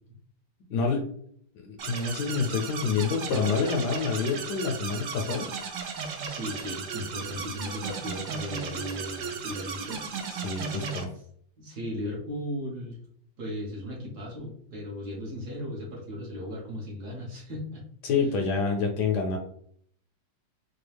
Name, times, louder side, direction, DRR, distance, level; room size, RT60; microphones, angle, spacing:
voice 1, 0.7-1.1 1.6-5.5 10.4-11.1 18.0-19.4, left 5 dB, 70° left, 2 dB, 1.1 m, -27 dB
sound 1, 1.8-11.0, right 5 dB, 80° right, 0.7 m, -36 dB
voice 2, 6.3-10.0 10.3-10.4 11.6-13.0 13.4-17.8 18.1-18.2, equal, 60° right, -3 dB, 1.7 m, -36 dB
4.5 x 2.3 x 3.3 m, 0.63 s
omnidirectional pair, 2.1 m